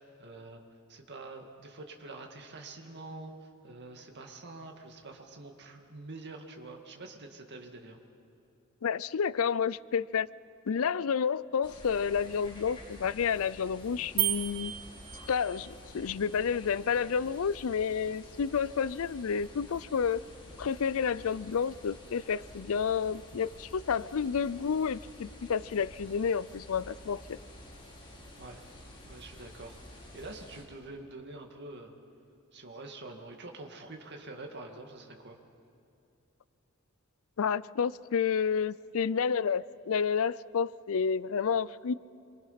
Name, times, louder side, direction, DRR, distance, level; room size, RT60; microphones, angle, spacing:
voice 1, 0.2-0.6 0.9-8.0 28.4-28.6 29.1-31.9 32.5-35.4, right 2 dB, 55° right, 3 dB, 2.2 m, -46 dB
voice 2, 8.8-10.3 10.7-14.7 15.3-20.2 20.6-27.4 37.4-41.9, left 6 dB, 70° left, 19 dB, 0.5 m, -30 dB
sound 1, 11.6-30.6, left 1 dB, 25° left, 4.3 m, -50 dB
sound 2, 14.2-15.7, right 14 dB, 90° right, 0.9 m, -33 dB
27.0 x 24.0 x 5.8 m, 2.6 s
head